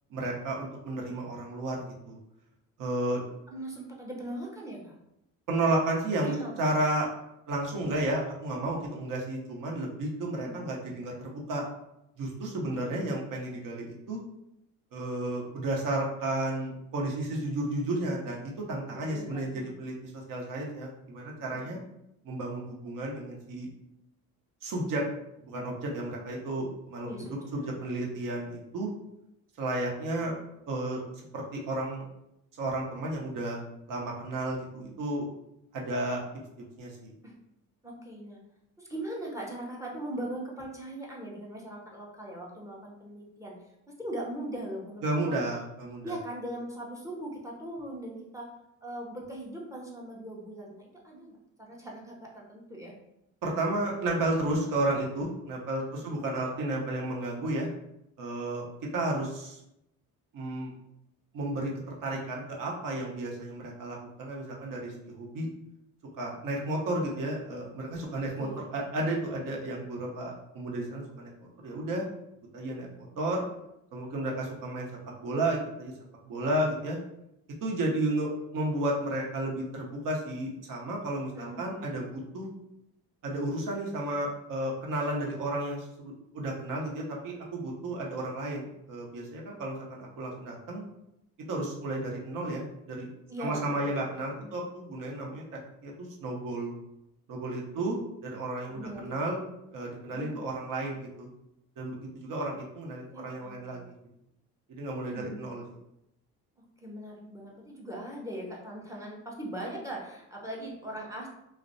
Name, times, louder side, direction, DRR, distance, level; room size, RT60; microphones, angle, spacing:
voice 1, 0.1-2.2 2.8-3.2 5.5-7.1 7.5-11.6 12.2-14.2 14.9-21.8 22.2-23.7 24.6-25.0 25.4-27.1 27.5-28.9 29.6-30.4 30.7-31.0 31.3-32.0 32.6-33.6 33.9-35.3 35.7-36.2 36.8-37.1 45.0-46.1 53.4-57.7 58.2-58.6 58.9-59.6 60.3-60.7 61.3-65.5 66.2-72.0 72.5-73.4 73.9-74.9 75.2-75.9 76.2-77.0 77.6-82.5 83.2-90.8 91.5-93.1 93.4-95.4 95.8-96.7 97.3-99.4 99.7-101.3 101.8-103.8 104.7-105.6, right 1 dB, 60° right, -2 dB, 0.8 m, -32 dB
voice 2, 3.2-4.9 6.2-6.7 10.3-10.6 18.9-19.7 21.5-21.8 27.0-27.4 27.6-27.7 37.2-37.3 37.8-38.4 38.8-43.5 44.0-45.3 46.0-48.5 48.8-52.9 56.0-56.5 68.4-68.9 81.3-81.7 93.3-94.6 97.7-97.9 98.7-99.1 100.1-100.4 103.1-103.8 105.0-105.5 106.8-111.3, right 1 dB, 10° right, -2 dB, 0.6 m, -40 dB
2.4 x 2.0 x 2.5 m, 0.83 s
cardioid pair, 85°, 36 cm